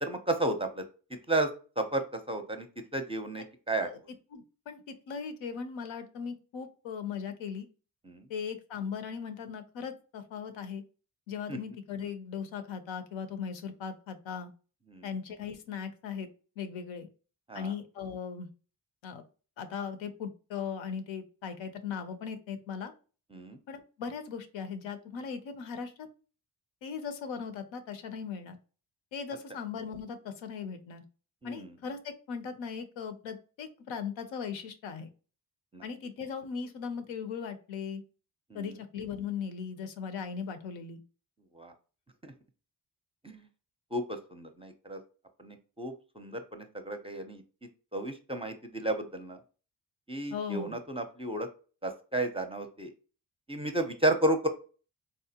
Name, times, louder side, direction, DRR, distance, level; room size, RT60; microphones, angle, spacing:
voice 1, 0.0-0.8 1.3-1.5 1.8-2.7 2.9-3.9 8.1-8.3 11.5-11.6 14.9-15.1 17.5-17.7 23.3-23.6 31.4-31.7 35.7-35.8 38.5-38.7 41.5-41.7 42.2-42.3 43.2-43.5 43.9-45.0 45.4-47.4 47.9-49.4 50.1-51.5 51.8-52.9 53.5-54.5, right 1 dB, 15° right, 6 dB, 0.5 m, -32 dB
voice 2, 4.3-7.7 8.3-10.8 11.3-14.5 15.0-16.3 16.6-17.1 17.5-18.5 19.0-19.2 19.6-22.9 23.7-26.1 26.8-28.6 29.1-31.0 31.4-35.1 35.8-38.0 38.5-41.0 50.3-50.7, left 6 dB, 80° left, 8 dB, 0.6 m, -38 dB
3.6 x 2.1 x 2.8 m, 0.36 s
cardioid pair, 60°, 45 cm